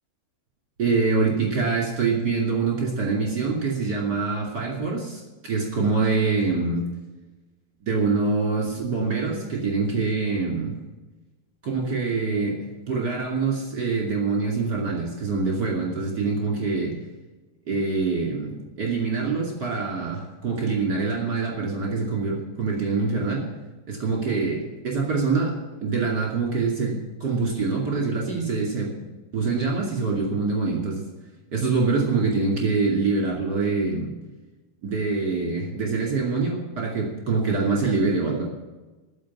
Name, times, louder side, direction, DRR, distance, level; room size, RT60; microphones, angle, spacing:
voice 1, 0.8-6.9 7.8-10.7 11.6-12.6 12.9-16.9 17.7-23.4 23.9-29.1 29.3-31.0 31.5-34.1 34.8-38.4, right 4 dB, 35° right, -2 dB, 1.9 m, -25 dB
13.5 x 6.1 x 9.6 m, 1.2 s
omnidirectional pair, 5.5 m